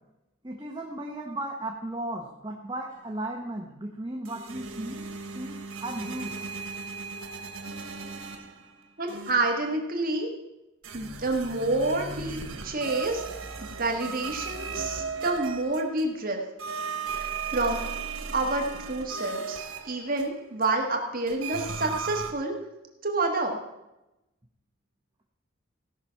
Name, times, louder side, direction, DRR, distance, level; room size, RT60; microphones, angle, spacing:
voice 1, 0.4-5.1 5.3-6.4, right 1 dB, 20° right, 0 dB, 0.9 m, -35 dB
sound 1, 4.2-8.7 9.1-9.6 10.8-16.2 16.6-20.7 21.3-22.3, right 5 dB, 90° right, 1.5 m, -36 dB
voice 2, 9.0-10.3 10.9-12.4 12.6-16.4 17.1-17.8 18.3-19.6 19.8-22.5 23.0-23.6, right 2 dB, 45° right, 2 dB, 1.5 m, -28 dB
16.0 x 6.0 x 5.7 m, 0.96 s
head